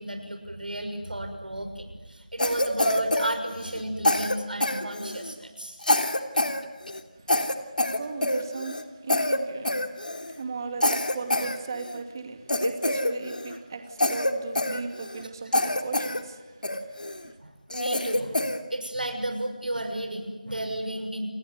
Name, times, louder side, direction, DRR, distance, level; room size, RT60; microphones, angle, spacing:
voice 1, 0.0-5.8 13.5-13.6 17.4-18.4 18.7-21.3, right 1 dB, 85° right, 6 dB, 6.6 m, -33 dB
Cough, 2.4-3.8 4.1-5.3 5.8-6.6 6.9-7.0 7.3-8.8 9.1-9.4 9.7-10.3 10.8-12.0 12.5-13.6 14.0-15.2 15.5-16.2 16.6-17.2 17.7-18.6, left 1 dB, 80° left, 3.2 m, -26 dB
voice 2, 7.8-17.4, right 4 dB, 25° right, 5 dB, 2.6 m, -38 dB
29.5 x 20.5 x 9.6 m, 1.2 s
figure-of-eight pair, 170°, 5 cm